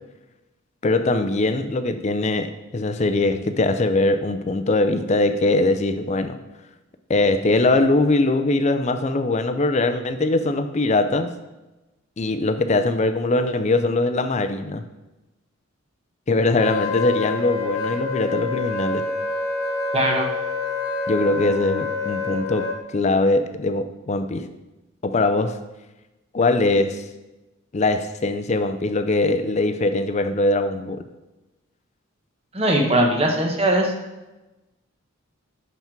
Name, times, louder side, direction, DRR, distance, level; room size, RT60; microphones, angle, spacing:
voice 1, 0.8-6.4 7.1-11.3 12.2-14.8 16.3-19.0 21.1-24.5 25.0-25.6 26.3-27.0 27.7-31.0, left 2 dB, 35° left, 9 dB, 0.4 m, -21 dB
Wind instrument woodwind instrument, 16.6-22.8, left 3 dB, 80° left, 1.3 m, -27 dB
voice 2, 19.9-20.3 32.5-33.9, right 1 dB, 30° right, 1 dB, 0.9 m, -20 dB
6.0 x 5.7 x 4.5 m, 1.0 s
head